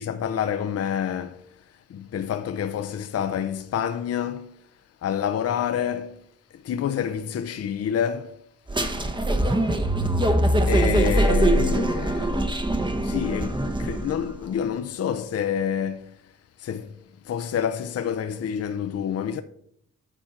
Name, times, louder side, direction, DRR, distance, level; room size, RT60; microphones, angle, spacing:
voice 1, 0.0-1.5 1.9-4.6 5.0-6.2 6.6-8.4 10.7-12.5 13.0-16.2 16.6-17.0 17.2-19.4, left 8 dB, 55° left, 0.6 m, -28 dB
sound 1, 8.7-14.3, right 1 dB, 15° right, 0.8 m, -22 dB
9.1 x 4.4 x 5.7 m
cardioid pair, 85°, 29 cm